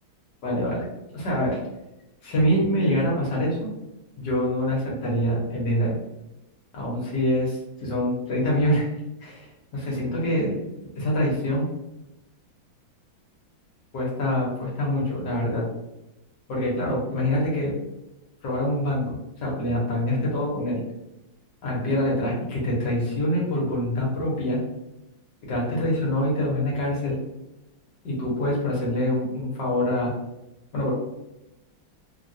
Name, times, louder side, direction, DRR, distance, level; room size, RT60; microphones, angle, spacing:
voice 1, 0.4-0.8 1.1-1.6 2.2-3.7 4.2-6.0 6.7-8.9 9.2-10.6 11.0-11.7 13.9-15.6 16.5-17.7 18.4-19.2 19.4-20.8 21.6-24.6 25.5-27.2 28.0-30.1 30.7-30.9, left 1 dB, 65° left, -4 dB, 1.5 m, -25 dB
3.4 x 2.2 x 2.6 m, 0.95 s
omnidirectional pair, 2.2 m